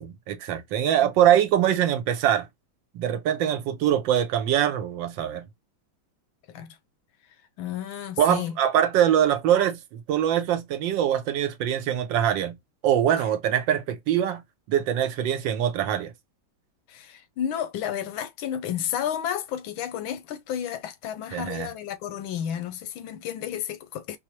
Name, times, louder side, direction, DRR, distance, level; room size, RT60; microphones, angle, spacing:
voice 1, 0.0-2.5 2.9-5.5 8.2-12.6 12.8-14.4 14.7-16.1 21.3-21.7, right 10 dB, 75° right, 1.3 m, -23 dB
voice 2, 1.0-1.4 6.5-6.8 7.6-8.6 16.9-24.2, left 10 dB, 85° left, 1.4 m, -32 dB
4.8 x 2.0 x 2.9 m
omnidirectional pair, 2.2 m